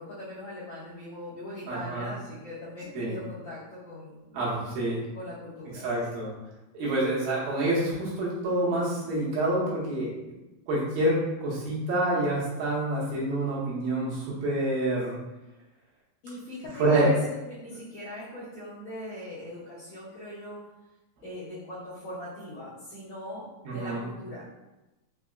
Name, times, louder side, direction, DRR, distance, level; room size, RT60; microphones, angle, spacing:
voice 1, 0.0-4.4 5.1-6.0 16.2-20.7 21.2-24.5, left 1 dB, 70° left, -11 dB, 1.7 m, -40 dB
voice 2, 1.7-2.1 3.0-3.1 4.3-5.0 5.8-6.3 6.7-10.1 10.7-15.1 16.8-17.1 23.7-24.0, right 1 dB, 80° right, -7 dB, 2.7 m, -27 dB
5.9 x 2.0 x 2.3 m, 1.0 s
omnidirectional pair, 4.3 m